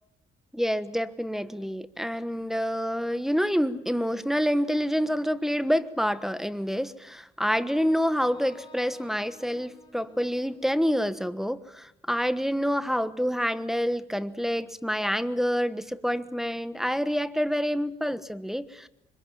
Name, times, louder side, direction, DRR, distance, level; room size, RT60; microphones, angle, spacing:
voice 1, 0.5-18.9, equal, ahead, 13 dB, 1.3 m, -27 dB
Wind instrument woodwind instrument, 7.5-11.5, left 2 dB, 20° left, 7.1 m, -54 dB
25.0 x 22.0 x 7.3 m, 0.85 s
cardioid pair, 90°, 20 cm